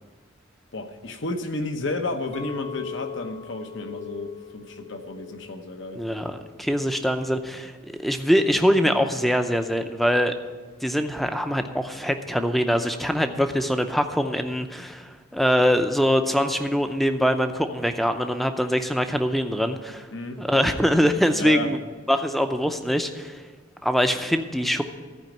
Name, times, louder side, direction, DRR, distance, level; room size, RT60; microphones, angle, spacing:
voice 1, 0.7-6.0 20.1-20.4 21.3-21.7, left 2 dB, 65° left, 7 dB, 1.0 m, -32 dB
Chink clink, 2.3-7.5, left 7 dB, 30° left, 1.1 m, -41 dB
voice 2, 6.0-10.3 10.8-20.1 20.4-21.8 22.1-23.4 23.8-24.8, equal, ahead, 7 dB, 0.6 m, -23 dB
13.5 x 5.1 x 9.0 m, 1.4 s
head